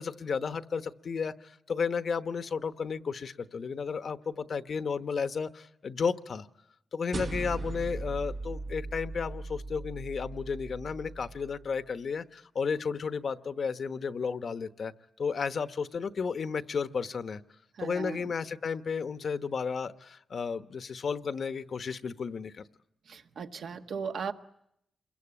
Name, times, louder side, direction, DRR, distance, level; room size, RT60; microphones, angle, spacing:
voice 1, 0.0-6.5 6.9-14.9 15.2-17.4 17.8-22.6, left 5 dB, 55° left, 10 dB, 1.0 m, -33 dB
sound 1, 7.1-11.8, right 3 dB, 45° right, 1.0 m, -39 dB
voice 2, 17.8-18.2 23.1-24.3, right 6 dB, 70° right, 6 dB, 1.4 m, -36 dB
27.5 x 22.5 x 8.7 m, 0.78 s
cardioid pair, 105°, 0 cm